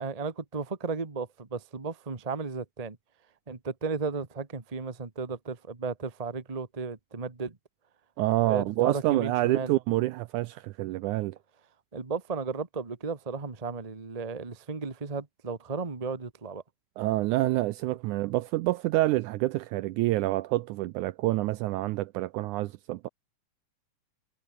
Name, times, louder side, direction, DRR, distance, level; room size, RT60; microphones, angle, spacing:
voice 1, 0.0-3.0 3.5-7.6 8.4-9.7 11.9-16.6, right 4 dB, 25° right, 0.8 m, -34 dB
voice 2, 8.2-11.4 17.0-23.1, right 17 dB, 80° right, 1.8 m, -27 dB
omnidirectional pair, 3.9 m